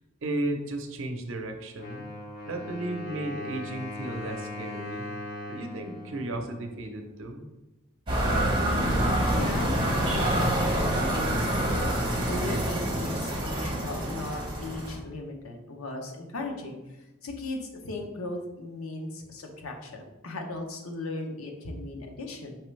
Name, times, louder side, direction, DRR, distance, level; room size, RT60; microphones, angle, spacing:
voice 1, 0.2-2.1 2.5-5.1 5.5-7.4, right 2 dB, 65° right, 4 dB, 0.6 m, -34 dB
Wind instrument woodwind instrument, 1.8-7.4, left 2 dB, 45° left, 1.6 m, -39 dB
sound 1, 8.1-14.9, right 1 dB, 25° right, 0.9 m, -26 dB
voice 2, 8.7-22.6, left 2 dB, 85° left, 2 dB, 0.7 m, -37 dB
4.6 x 3.3 x 3.1 m, 1.0 s
head